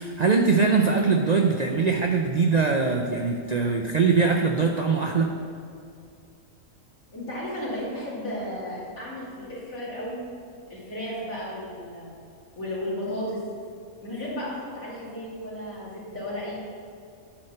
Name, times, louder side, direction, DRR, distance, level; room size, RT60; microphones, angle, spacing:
voice 1, 0.0-5.3, right 4 dB, 90° right, 2 dB, 0.3 m, -22 dB
voice 2, 7.1-10.2 10.7-12.1 12.6-13.4 14.0-16.6, left 1 dB, 70° left, -7 dB, 3.1 m, -34 dB
9.9 x 4.4 x 6.5 m, 2.4 s
omnidirectional pair, 1.5 m